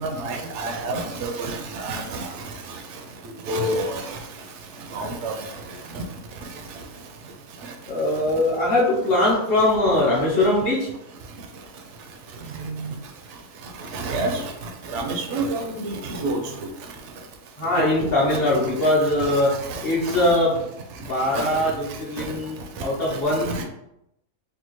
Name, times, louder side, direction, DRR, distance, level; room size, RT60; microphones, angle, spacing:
voice 1, 0.0-2.3 3.5-4.2 4.9-5.3 5.9-6.0 12.5-12.9 13.9-14.4 14.9-16.4 17.8-17.9 18.3-18.4 19.3-19.4 19.7-20.2 21.3-21.5 22.2-22.3 23.5-23.6, right 2 dB, 65° right, 4 dB, 0.8 m, -28 dB
voice 2, 7.9-10.9 16.1-16.2 17.6-19.5 19.8-20.6 21.0-23.6, left 1 dB, 45° left, -5 dB, 0.9 m, -21 dB
3.5 x 2.3 x 3.0 m, 0.83 s
omnidirectional pair, 1.5 m